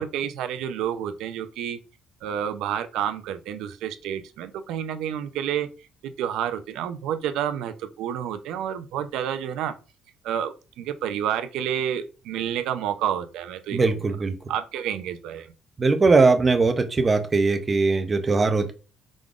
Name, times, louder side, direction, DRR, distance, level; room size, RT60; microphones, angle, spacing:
voice 1, 0.0-1.8 2.2-5.7 6.0-9.7 10.2-13.9 14.5-15.5, right 9 dB, 80° right, 10 dB, 0.5 m, -29 dB
voice 2, 13.7-14.3 15.8-18.7, right 3 dB, 20° right, 7 dB, 0.5 m, -20 dB
5.0 x 3.7 x 2.4 m, 0.34 s
cardioid pair, 180°, 0 cm